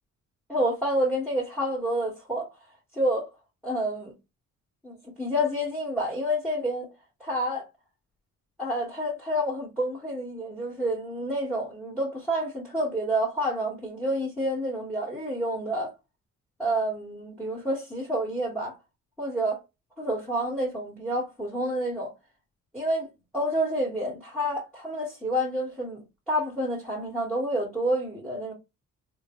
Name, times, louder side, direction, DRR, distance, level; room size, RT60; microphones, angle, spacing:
voice 1, 0.5-2.5 2.9-3.3 3.6-4.1 4.8-6.9 7.2-7.7 8.6-15.9 16.6-18.7 19.2-19.6 20.0-22.1 22.7-23.1 23.3-28.5, equal, ahead, 1.6 m, -28 dB
3.7 x 2.2 x 3.0 m
cardioid pair, 90°, 30 cm